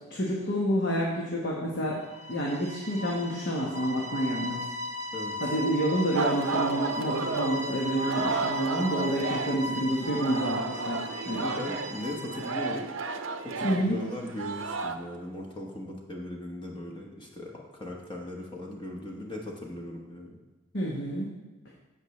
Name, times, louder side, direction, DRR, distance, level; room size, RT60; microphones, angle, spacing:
voice 1, 0.1-2.0 2.3-4.6 5.4-11.4 13.6-14.0 20.7-21.3, equal, 55° left, -3 dB, 1.3 m, -28 dB
sound 1, 2.0-12.8, left 2 dB, 15° right, 0.8 m, -37 dB
Singing, 6.1-9.7 10.0-14.9, right 4 dB, 65° right, 0.6 m, -33 dB
voice 2, 11.4-12.9 13.4-20.4, left 1 dB, 20° left, 0 dB, 1.1 m, -38 dB
15.5 x 5.5 x 3.2 m, 1.3 s
head